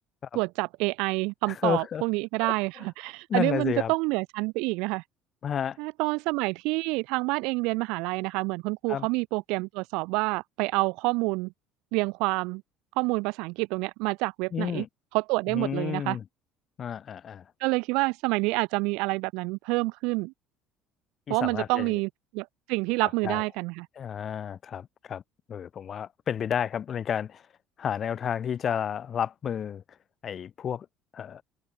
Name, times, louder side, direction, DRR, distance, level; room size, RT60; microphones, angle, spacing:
voice 1, 0.3-5.0 5.8-11.5 11.9-12.6 13.0-14.8 15.1-16.2 17.6-20.3 21.3-23.9, right 26 dB, 75° right, 1.3 m, -28 dB
voice 2, 1.5-2.0 2.4-2.5 3.3-3.9 5.4-5.8 8.9-9.1 14.5-14.9 15.5-16.2 16.8-17.5 21.3-22.0 23.2-23.4 24.0-25.2 25.5-27.4 27.8-29.8 30.2-30.9 31.1-31.4, left 8 dB, 45° left, 3.0 m, -31 dB
hypercardioid pair, 70°, 0 cm